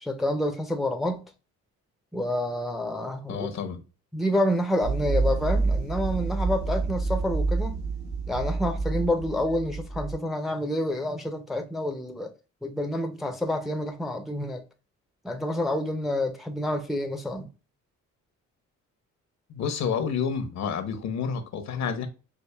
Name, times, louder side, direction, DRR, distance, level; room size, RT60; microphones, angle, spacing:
voice 1, 0.0-1.2 2.1-3.5 4.1-7.8 8.3-12.3 12.6-14.6 15.2-17.5, left 1 dB, ahead, 0.5 m, -28 dB
voice 2, 3.3-3.8 19.5-22.1, left 6 dB, 65° left, 0.8 m, -29 dB
sound 1, 4.8-10.1, right 3 dB, 70° right, 1.2 m, -28 dB
4.7 x 2.4 x 2.2 m
cardioid pair, 90°, 30 cm